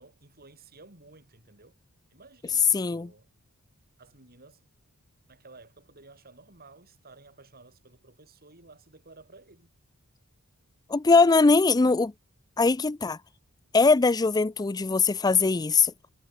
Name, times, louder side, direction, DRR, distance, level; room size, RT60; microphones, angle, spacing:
voice 1, 0.0-1.8 2.1-3.3 4.0-4.6 5.3-9.7, right 3 dB, 45° right, 5.5 m, -54 dB
voice 2, 2.7-3.1 10.9-12.1 12.6-13.2 13.7-15.9, left 4 dB, 15° left, 0.4 m, -21 dB
head